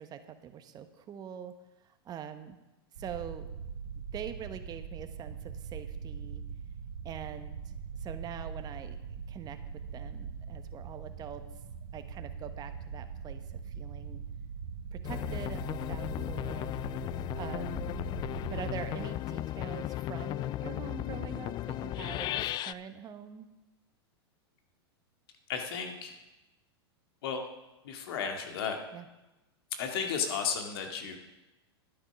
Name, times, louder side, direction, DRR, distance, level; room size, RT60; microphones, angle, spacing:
voice 1, 0.0-1.5 1.8-2.6 3.0-3.5 4.1-6.4 7.0-7.7 8.0-9.6 9.9-11.5 11.9-14.2 14.9-16.7 17.3-18.0 18.5-23.5 28.9-29.1, right 8 dB, 30° right, 9 dB, 1.2 m, -44 dB
sound 1, 3.0-19.1, right 6 dB, 65° right, 2.8 m, -42 dB
sound 2, 15.0-22.7, left 14 dB, 35° left, 0.4 m, -35 dB
voice 2, 25.5-26.2 27.2-27.5 27.8-28.8 29.7-31.2, left 6 dB, 65° left, 4 dB, 2.1 m, -34 dB
11.0 x 9.7 x 6.0 m, 1.0 s
hypercardioid pair, 115°, 13 cm